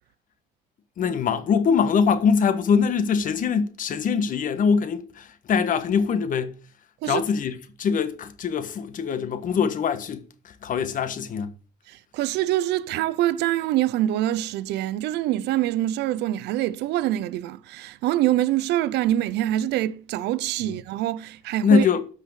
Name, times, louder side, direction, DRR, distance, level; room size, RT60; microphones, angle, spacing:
voice 1, 1.0-6.6 7.0-11.5 21.6-22.0, left 6 dB, 55° left, 1.4 m, -23 dB
voice 2, 11.9-21.9, right 13 dB, 80° right, 0.7 m, -25 dB
13.0 x 4.9 x 6.4 m
cardioid pair, 110°, 17 cm